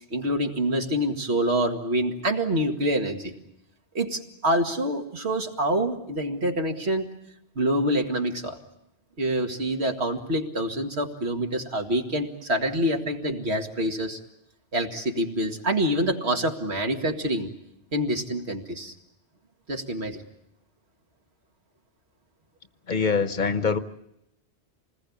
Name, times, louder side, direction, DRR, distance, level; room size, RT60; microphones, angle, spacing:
voice 1, 0.1-3.3 3.9-7.1 7.6-8.6 9.2-14.2 14.7-17.5 17.9-18.9 19.7-20.2, right 1 dB, 70° right, 3 dB, 2.4 m, -26 dB
voice 2, 22.9-23.8, left 5 dB, 45° left, 11 dB, 1.2 m, -24 dB
27.5 x 20.0 x 8.7 m, 0.83 s
omnidirectional pair, 1.1 m